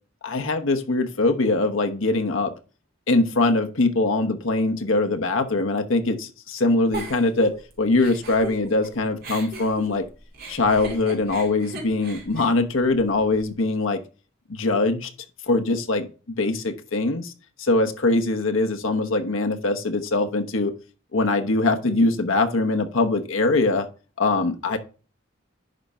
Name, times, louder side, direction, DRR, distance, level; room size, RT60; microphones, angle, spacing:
voice 1, 0.2-2.5 3.1-10.0 10.5-14.0 14.5-15.1 15.5-17.3 17.6-20.7 21.1-23.9 24.2-24.8, left 2 dB, 80° left, 1.0 m, -22 dB
Giggle, 6.9-8.9 9.2-13.4, right 2 dB, 50° right, 2.2 m, -38 dB
10.5 x 4.3 x 3.5 m
head